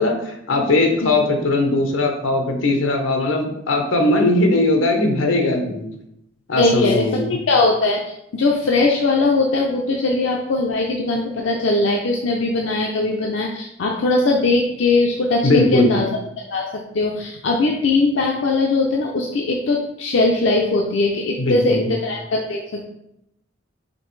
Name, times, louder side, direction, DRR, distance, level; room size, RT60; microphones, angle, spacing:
voice 1, 0.0-5.9 6.5-7.3 15.4-15.9 21.4-21.9, left 2 dB, 90° left, 4 dB, 0.8 m, -19 dB
voice 2, 6.6-16.1 16.4-22.8, left 3 dB, 75° left, 0 dB, 0.5 m, -20 dB
5.1 x 3.2 x 3.2 m, 0.80 s
head